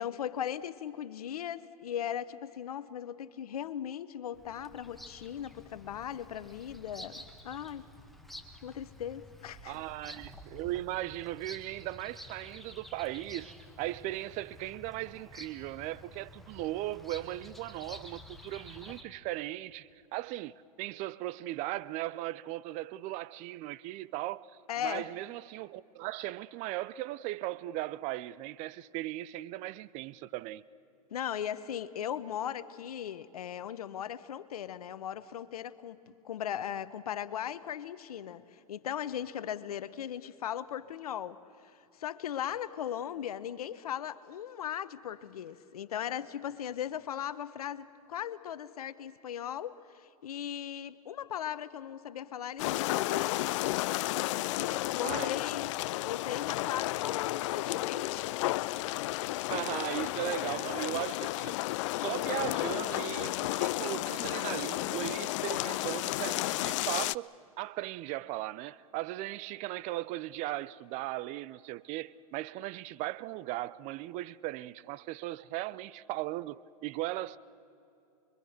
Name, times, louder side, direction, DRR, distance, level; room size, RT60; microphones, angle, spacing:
voice 1, 0.0-7.9 8.6-9.8 24.7-25.1 31.1-53.4 54.1-58.3, left 10 dB, 75° left, 1.0 m, -38 dB
Bird vocalization bird call bird song, 4.3-19.0, left 1 dB, ahead, 1.5 m, -50 dB
voice 2, 9.7-24.5 24.8-30.6 55.0-55.4 59.5-61.5 62.0-67.3 67.6-77.4, right 16 dB, 40° right, 0.6 m, -37 dB
sound 1, 52.6-67.2, left 18 dB, 55° left, 0.4 m, -32 dB
25.5 x 23.0 x 6.6 m
hypercardioid pair, 115°, 19 cm